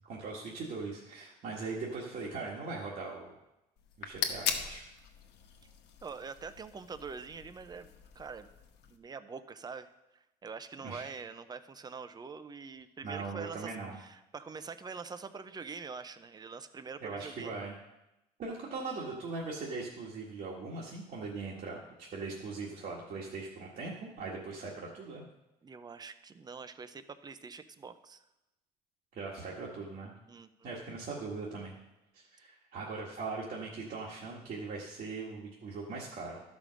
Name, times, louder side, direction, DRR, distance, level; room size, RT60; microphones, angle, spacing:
voice 1, 0.0-3.3 4.0-4.8 10.8-11.2 13.0-13.9 17.0-17.7 18.4-25.2 29.1-30.1 30.6-31.7 32.1-36.4, right 3 dB, 60° right, -4 dB, 1.7 m, -40 dB
sound 1, 3.8-9.0, left 7 dB, 80° left, 1.1 m, -40 dB
voice 2, 6.0-8.5 8.9-17.5 25.6-28.2 30.3-30.5, right 5 dB, 25° right, 11 dB, 0.6 m, -45 dB
12.5 x 5.2 x 6.3 m, 0.93 s
cardioid pair, 110°, 17 cm